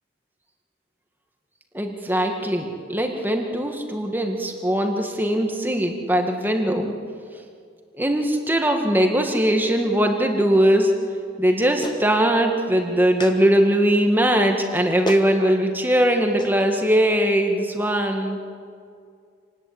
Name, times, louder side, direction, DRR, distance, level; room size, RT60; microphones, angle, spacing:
voice 1, 1.7-7.0 8.0-10.9 11.4-18.4, right 1 dB, 10° right, 3 dB, 2.0 m, -20 dB
Clapping, 11.8-12.1 13.2-13.4 14.6-14.7 15.1-15.3 16.4-16.5, left 1 dB, 25° left, 1.5 m, -30 dB
27.5 x 19.5 x 8.8 m, 2.2 s
head